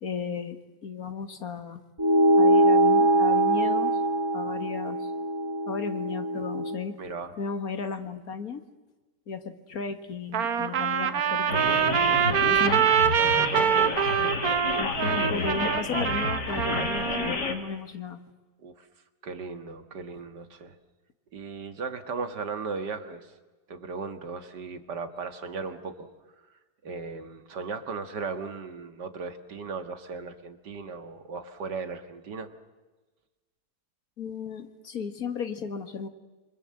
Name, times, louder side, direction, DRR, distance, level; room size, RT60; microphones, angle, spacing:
voice 1, 0.0-1.8 2.4-3.9 4.3-5.1 5.7-7.0 7.4-8.6 9.3-11.9 12.3-12.9 14.2-14.4 14.8-18.2 34.2-36.1, left 6 dB, 60° left, 8 dB, 2.2 m, -35 dB
sound 1, 2.0-6.8, right 1 dB, 20° right, 0.9 m, -22 dB
voice 2, 7.0-7.3 13.4-14.0 18.6-18.9 19.2-20.8 21.3-23.3 23.7-26.1 26.8-32.5, right 4 dB, 90° right, 8 dB, 2.3 m, -36 dB
Trumpet, 10.3-17.3, right 8 dB, 65° right, 1.6 m, -24 dB
sound 2, 11.5-17.6, left 3 dB, 90° left, 3.0 m, -30 dB
28.0 x 25.5 x 7.7 m, 1.2 s
omnidirectional pair, 1.8 m